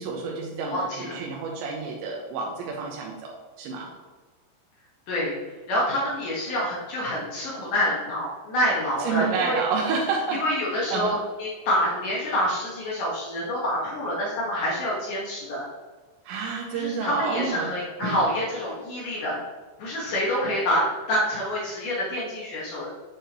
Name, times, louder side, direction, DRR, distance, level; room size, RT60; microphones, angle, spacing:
voice 1, 0.0-3.9 9.0-10.4 10.7-11.2 16.3-17.7 18.0-18.3, right 5 dB, 85° right, 0 dB, 2.6 m, -29 dB
voice 2, 0.6-1.2 5.1-5.3 5.7-9.6 10.4-15.7 16.7-19.4 19.8-22.9, left 1 dB, 75° left, -5 dB, 1.9 m, -27 dB
7.6 x 6.7 x 3.0 m, 1.4 s
omnidirectional pair, 5.9 m